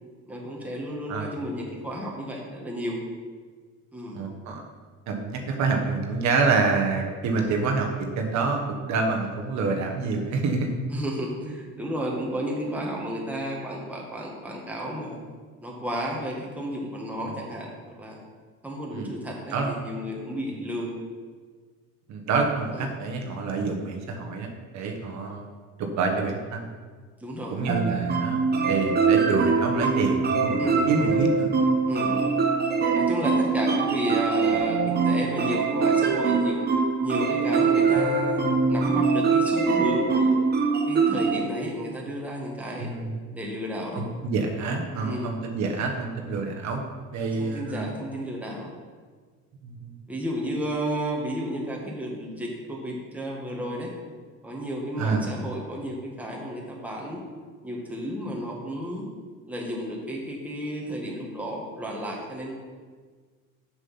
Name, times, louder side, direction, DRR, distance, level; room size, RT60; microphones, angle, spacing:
voice 1, 0.3-3.0 3.9-4.2 7.4-7.5 10.9-15.2 15.6-18.2 18.6-20.9 22.7-22.9 27.2-27.6 30.6-31.2 31.9-32.3 32.9-36.7 37.0-38.4 38.7-40.4 40.9-42.9 43.3-44.0 45.0-45.3 47.4-48.7 50.1-53.9 54.4-57.2 57.6-59.1 59.5-62.5, equal, 5° right, -2 dB, 1.6 m, -32 dB
voice 2, 1.1-1.4 4.1-4.6 5.1-10.7 17.2-17.4 18.9-19.1 19.5-19.8 22.1-25.4 25.8-26.7 27.5-31.5 42.8-43.1 43.9-46.8 47.1-47.9 49.6-50.0 55.0-55.3, right 4 dB, 60° right, 2 dB, 1.2 m, -27 dB
sound 1, 27.7-41.4, right 4 dB, 30° right, 0.9 m, -23 dB
6.7 x 6.2 x 5.6 m, 1.5 s
cardioid pair, 120°, 31 cm